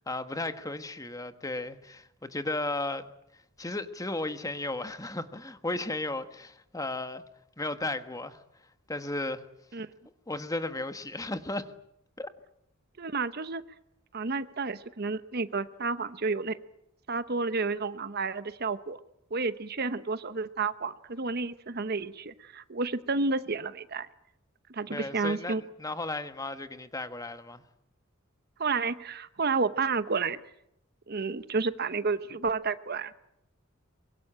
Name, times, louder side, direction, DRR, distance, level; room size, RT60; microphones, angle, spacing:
voice 1, 0.1-3.1 3.6-7.2 7.6-8.4 8.9-9.4 10.3-11.7 12.2-12.3 24.9-27.6, left 2 dB, 15° left, 1.3 m, -34 dB
voice 2, 13.0-13.6 14.1-16.6 17.1-19.0 19.3-24.1 24.7-25.6 28.6-30.4 31.1-33.1, right 4 dB, 50° right, 0.9 m, -31 dB
24.0 x 22.5 x 8.8 m
head